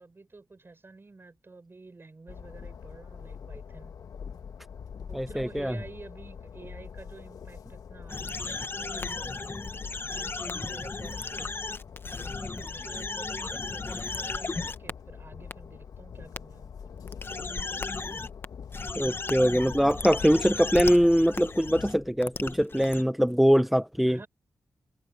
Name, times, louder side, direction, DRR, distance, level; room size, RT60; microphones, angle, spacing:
voice 1, 0.0-3.9 5.1-9.7 10.1-11.5 12.2-17.1 24.1-24.3, right 3 dB, 35° right, 7.4 m, -49 dB
Train, 2.3-21.9, left 6 dB, 75° left, 1.4 m, -44 dB
voice 2, 5.1-5.7 18.9-24.2, equal, ahead, 0.9 m, -23 dB
sound 1, 8.1-14.9 15.5-15.6 16.4-16.5 17.1-18.5 18.7-23.0, left 3 dB, 35° left, 1.1 m, -35 dB
cardioid pair, 60°, 6 cm